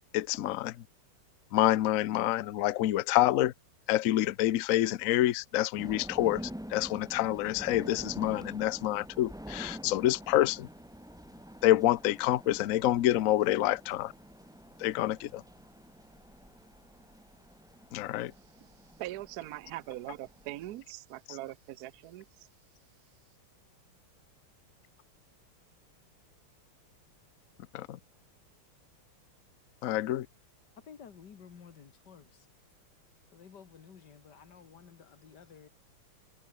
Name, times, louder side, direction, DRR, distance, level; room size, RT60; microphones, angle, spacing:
voice 1, 0.1-0.7 1.5-3.5 3.9-6.4 6.7-10.7 11.6-14.1 14.8-15.4 17.9-18.3 27.7-28.0 29.8-30.3, left 14 dB, 75° left, 0.7 m, -27 dB
sound 1, 5.8-20.8, equal, ahead, 1.8 m, -47 dB
voice 2, 19.0-22.3, right 15 dB, 70° right, 0.9 m, -41 dB
voice 3, 30.9-32.5 33.3-35.7, left 7 dB, 55° left, 2.2 m, -53 dB
omnidirectional pair, 2.3 m